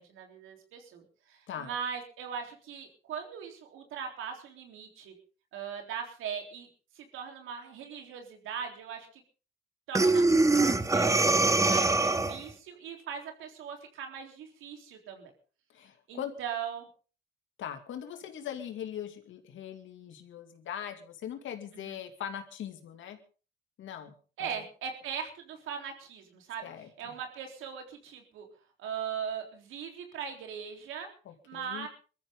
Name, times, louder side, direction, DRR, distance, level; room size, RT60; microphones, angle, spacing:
voice 1, 0.0-5.1 5.5-6.7 6.9-9.2 9.9-15.3 16.1-16.9 21.8-22.0 24.4-26.7 27.0-28.5 28.8-31.1 31.5-31.9, right 7 dB, 85° right, 4 dB, 3.8 m, -40 dB
Breathing, 10.0-12.5, right 2 dB, 15° right, 1.3 m, -23 dB
voice 2, 15.7-16.3 17.6-23.2 23.8-24.1 24.4-24.6 26.6-27.2 31.2-31.9, left 9 dB, 75° left, 6 dB, 2.6 m, -41 dB
22.5 x 13.5 x 3.9 m, 0.38 s
cardioid pair, 90°, 20 cm